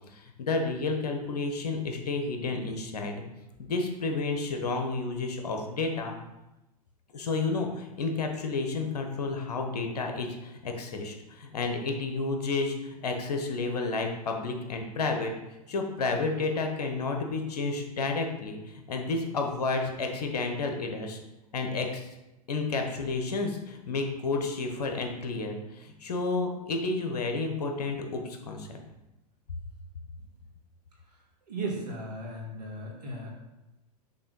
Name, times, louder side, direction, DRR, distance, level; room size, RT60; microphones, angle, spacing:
voice 1, 0.1-3.2 3.6-6.1 7.1-15.3 15.7-21.2 21.5-22.1 22.5-28.8, left 3 dB, 75° left, 3 dB, 1.2 m, -31 dB
voice 2, 31.5-33.4, right 2 dB, 85° right, -3 dB, 2.2 m, -36 dB
6.5 x 3.0 x 5.5 m, 0.97 s
hypercardioid pair, 110°, 20 cm